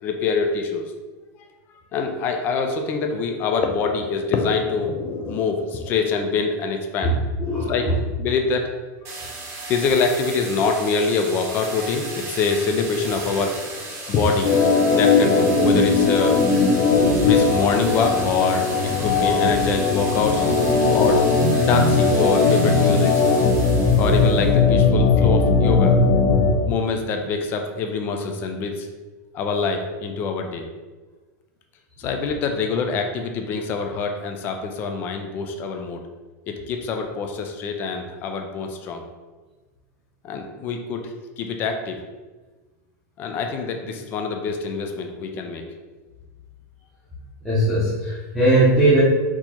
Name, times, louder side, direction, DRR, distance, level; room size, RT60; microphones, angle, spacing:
voice 1, 0.0-0.9 1.9-7.1 7.7-7.9 8.2-8.7 9.7-14.5 14.9-16.4 17.2-18.7 19.0-20.5 20.9-21.2 21.6-23.1 24.0-26.0 26.7-28.9 29.3-30.7 32.0-36.0 36.5-39.0 40.2-42.0 43.2-45.7, left 4 dB, 20° left, 4 dB, 0.3 m, -25 dB
voice 2, 7.4-7.9 47.4-49.0, right 1 dB, ahead, -13 dB, 0.8 m, -19 dB
sound 1, 9.0-24.5, right 2 dB, 25° right, 0.9 m, -35 dB
Organ, 14.4-26.6, left 4 dB, 60° left, 0.9 m, -18 dB
4.4 x 2.8 x 4.3 m, 1.3 s
supercardioid pair, 175°, 10 cm